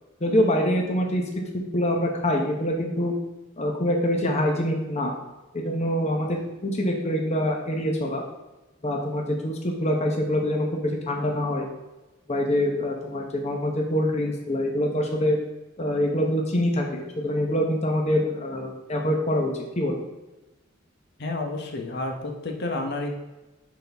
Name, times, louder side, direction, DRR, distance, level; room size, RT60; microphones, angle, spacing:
voice 1, 0.2-1.2 1.5-3.1 3.6-5.1 5.5-8.2 8.8-11.7 12.3-15.4 15.8-20.0, equal, 35° left, 1 dB, 1.0 m, -25 dB
voice 2, 21.2-23.1, left 2 dB, 55° left, 3 dB, 0.9 m, -30 dB
11.0 x 4.1 x 3.5 m, 1.1 s
head